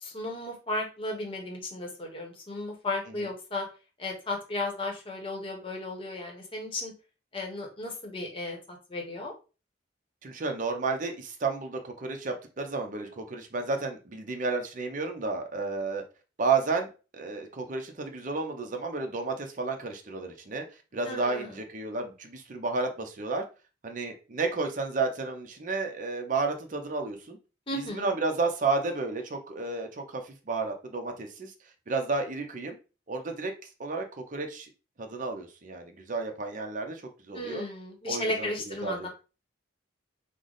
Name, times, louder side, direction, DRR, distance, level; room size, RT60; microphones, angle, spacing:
voice 1, 0.0-3.6 4.0-6.9 7.3-9.3 21.1-21.5 27.7-28.1 37.3-39.1, left 2 dB, 30° left, 1 dB, 0.9 m, -34 dB
voice 2, 10.2-16.0 16.4-20.6 20.9-23.4 23.8-27.4 27.7-31.5 31.9-32.8 33.1-33.5 33.8-34.7 35.0-37.6 38.1-39.1, right 3 dB, 40° right, 4 dB, 0.6 m, -32 dB
3.3 x 2.1 x 3.8 m, 0.33 s
head